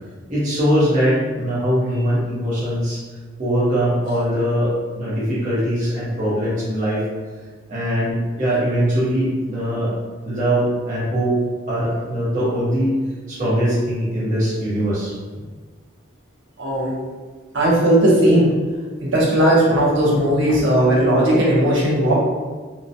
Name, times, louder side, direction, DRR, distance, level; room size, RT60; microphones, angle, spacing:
voice 1, 0.3-3.0 3.4-7.0 7.7-9.9 10.2-11.3 11.7-13.0 13.3-15.1, equal, 35° right, -9 dB, 0.9 m, -21 dB
voice 2, 16.6-17.0 17.5-18.5 19.0-22.2, right 1 dB, 70° right, -5 dB, 0.8 m, -16 dB
2.8 x 2.1 x 2.6 m, 1.4 s
head